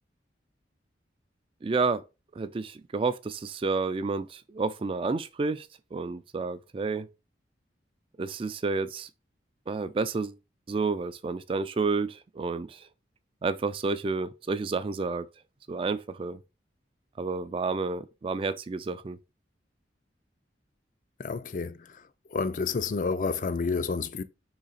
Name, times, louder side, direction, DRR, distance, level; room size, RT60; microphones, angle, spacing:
voice 1, 1.6-2.0 2.4-7.1 8.2-9.1 9.7-10.4 10.7-12.9 13.4-15.3 15.7-16.4 17.2-19.2, right 4 dB, 30° right, 0.3 m, -30 dB
voice 2, 21.2-22.0 22.3-24.2, left 4 dB, 45° left, 0.4 m, -30 dB
3.9 x 3.2 x 4.0 m
head